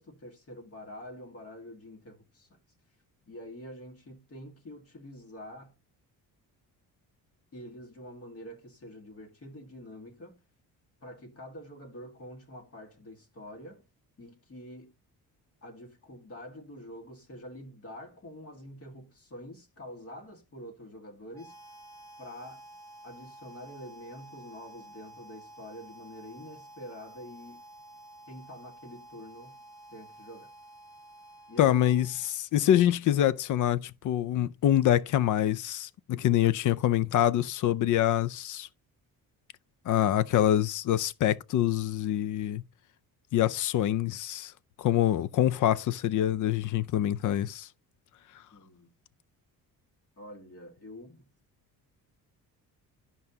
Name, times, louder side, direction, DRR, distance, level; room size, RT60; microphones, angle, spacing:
voice 1, 0.0-2.6 3.3-5.7 7.5-10.4 11.0-13.8 14.2-14.9 15.6-21.6 22.2-22.7 23.0-27.6 28.3-29.6 29.9-30.5 31.5-31.8 48.5-48.9 50.2-51.3, equal, 40° left, 1.8 m, -46 dB
Harmonica, 21.3-32.4, right 1 dB, 10° left, 1.0 m, -51 dB
voice 2, 31.6-38.7 39.9-42.6 43.3-44.5 44.8-47.7, left 11 dB, 55° left, 0.5 m, -25 dB
10.5 x 5.5 x 2.8 m
cardioid pair, 130°, 37 cm